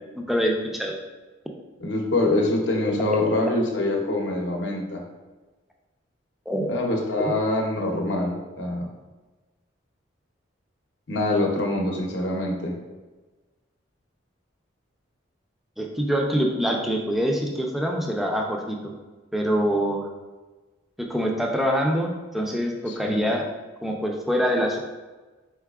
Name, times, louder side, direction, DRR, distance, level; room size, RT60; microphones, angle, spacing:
voice 1, 0.2-1.0 6.5-6.7 15.8-18.9 19.3-20.1 21.0-23.4 23.8-24.8, equal, ahead, 0 dB, 0.4 m, -25 dB
voice 2, 1.8-5.0 6.7-8.9 11.1-12.7 22.9-23.2, left 2 dB, 65° left, 0 dB, 0.7 m, -25 dB
4.6 x 4.1 x 2.3 m, 1.2 s
head